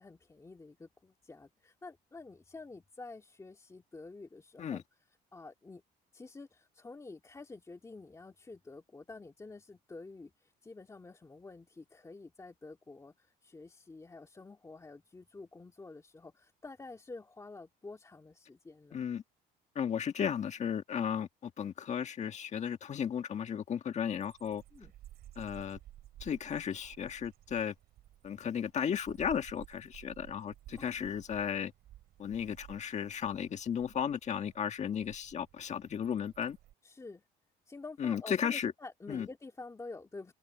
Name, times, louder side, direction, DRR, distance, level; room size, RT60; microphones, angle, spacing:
voice 1, 0.0-5.8 6.1-19.0 24.7-24.9 30.8-30.9 36.8-37.2 37.7-40.3, left 3 dB, 20° left, 2.3 m, -49 dB
voice 2, 18.9-19.2 19.7-24.6 25.4-25.8 26.2-27.7 28.2-31.7 32.2-36.6 38.0-38.7 39.1-39.3, left 8 dB, 45° left, 1.6 m, -35 dB
sound 1, 24.1-36.7, right 13 dB, 70° right, 6.6 m, -55 dB
cardioid pair, 110°, 17 cm